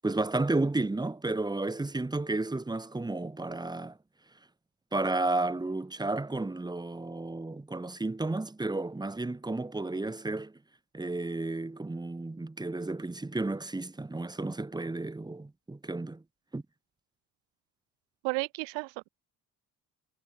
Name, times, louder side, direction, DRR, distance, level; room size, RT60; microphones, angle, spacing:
voice 1, 0.0-4.0 4.9-10.5 10.9-16.2 16.5-16.6, right 2 dB, 10° right, 0.8 m, -32 dB
voice 2, 18.2-19.1, right 30 dB, 70° right, 0.7 m, -33 dB
hypercardioid pair, 50°, 45 cm